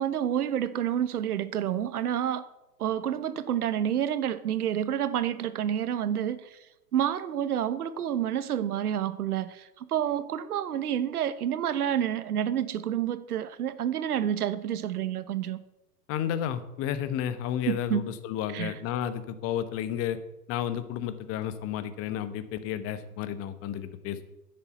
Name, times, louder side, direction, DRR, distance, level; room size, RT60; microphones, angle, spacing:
voice 1, 0.0-2.5 2.8-6.6 6.9-15.6 17.7-18.2 18.5-18.7, right 10 dB, 70° right, 13 dB, 1.2 m, -29 dB
voice 2, 16.1-20.2 20.5-24.2, left 10 dB, 30° left, 12 dB, 1.1 m, -32 dB
10.5 x 7.9 x 7.7 m, 0.94 s
hypercardioid pair, 115°, 48 cm